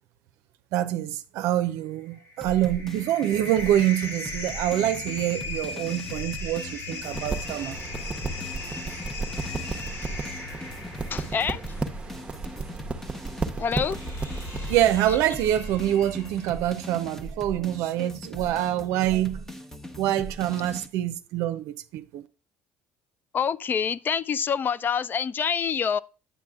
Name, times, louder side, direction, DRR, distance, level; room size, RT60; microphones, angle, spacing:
voice 1, 0.7-7.8 14.7-19.6 20.0-22.3, right 12 dB, 75° right, 0.5 m, -26 dB
sound 1, 2.1-16.6, left 3 dB, 60° left, 3.3 m, -38 dB
sound 2, 2.4-20.9, right 1 dB, 10° left, 0.9 m, -40 dB
sound 3, 7.0-14.7, right 3 dB, 20° right, 0.8 m, -34 dB
voice 2, 9.5-9.9 11.1-11.6 13.6-14.1 23.3-26.0, left 7 dB, 40° left, 0.3 m, -27 dB
9.2 x 6.2 x 2.3 m
supercardioid pair, 85°, 5 cm